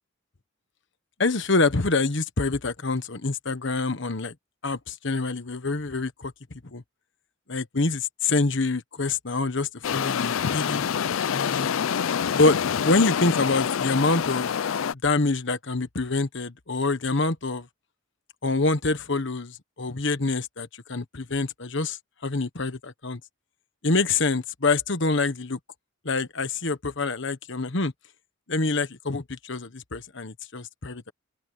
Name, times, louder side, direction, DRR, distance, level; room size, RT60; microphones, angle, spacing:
voice 1, 1.2-4.3 4.6-6.3 6.7-6.8 7.5-10.9 11.3-11.7 12.3-14.5 15.0-17.7 18.4-23.2 23.8-25.6 26.0-27.9 28.5-31.1, left 3 dB, 60° left, 1.3 m, -26 dB
sound 1, 9.8-14.9, left 7 dB, 80° left, 0.4 m, -26 dB
open air
head